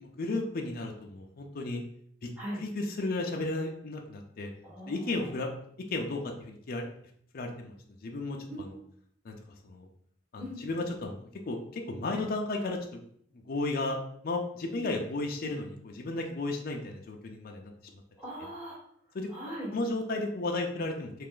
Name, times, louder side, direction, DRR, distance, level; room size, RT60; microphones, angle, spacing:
voice 1, 0.0-1.8 2.2-2.3 2.5-4.5 4.9-5.5 5.9-6.9 7.3-7.7 8.0-8.8 9.2-9.4 9.6-9.9 10.3-13.0 13.5-14.0 14.2-17.7 19.1-19.3 19.7-21.1, left 2 dB, 50° left, 2 dB, 0.5 m, -34 dB
voice 2, 4.6-5.3 8.5-8.6 10.4-10.6 14.7-14.8 18.2-18.8 19.3-19.7, equal, 5° right, -7 dB, 1.4 m, -40 dB
3.3 x 2.4 x 3.7 m, 0.66 s
head